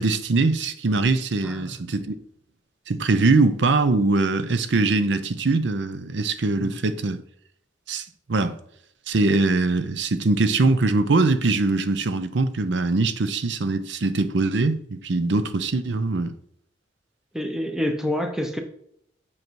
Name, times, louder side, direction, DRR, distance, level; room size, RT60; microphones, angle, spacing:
voice 1, 0.0-2.2 2.9-7.2 7.9-8.6 9.1-16.4, right 3 dB, 70° right, 0.6 m, -22 dB
voice 2, 1.4-1.7 6.6-6.8 17.3-18.6, left 1 dB, 5° right, 0.9 m, -27 dB
7.9 x 5.5 x 4.6 m
head